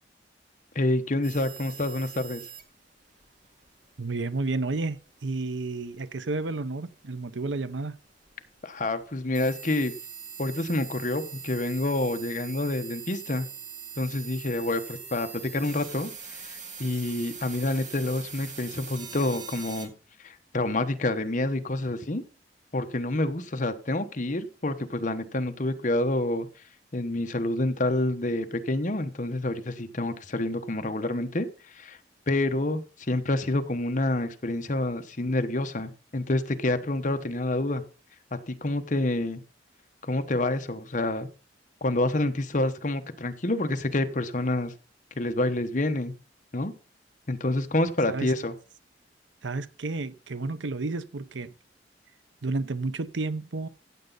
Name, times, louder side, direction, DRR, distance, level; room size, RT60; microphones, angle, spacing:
voice 1, 0.7-2.4 8.6-9.9 10.4-13.5 14.0-19.9 20.2-22.2 22.7-26.5 26.9-32.0 32.3-37.8 38.5-39.4 40.0-41.3 41.8-44.7 45.2-46.1 46.5-46.7 47.3-48.5, left 2 dB, 45° left, 1.0 m, -28 dB
sound 1, 1.2-19.9, right 6 dB, 45° right, 2.3 m, -43 dB
voice 2, 4.0-8.0 48.1-48.3 49.4-51.5 52.4-53.7, right 3 dB, 85° right, 0.8 m, -31 dB
15.0 x 8.0 x 4.0 m
head